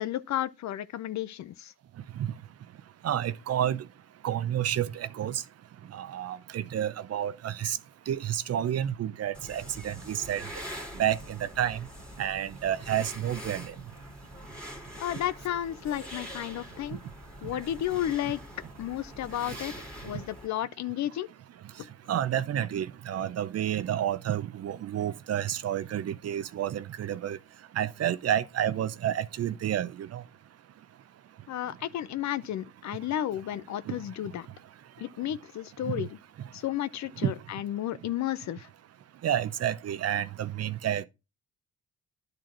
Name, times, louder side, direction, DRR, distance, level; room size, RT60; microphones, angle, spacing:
voice 1, 0.0-1.7 15.0-17.0 17.4-18.4 18.8-19.7 20.0-21.3 31.5-34.5 35.0-36.1 36.5-38.7, left 12 dB, 65° left, 0.7 m, -32 dB
voice 2, 3.0-3.8 4.2-4.9 5.2-5.4 6.0-7.8 8.1-10.4 11.0-11.2 11.6-11.8 12.2-13.6 22.1-27.4 27.8-30.2 35.9-36.0 39.2-41.1, right 10 dB, 55° right, 0.7 m, -30 dB
sound 1, 9.3-20.5, equal, 5° left, 2.1 m, -44 dB
10.5 x 3.9 x 4.5 m
cardioid pair, 90°, 30 cm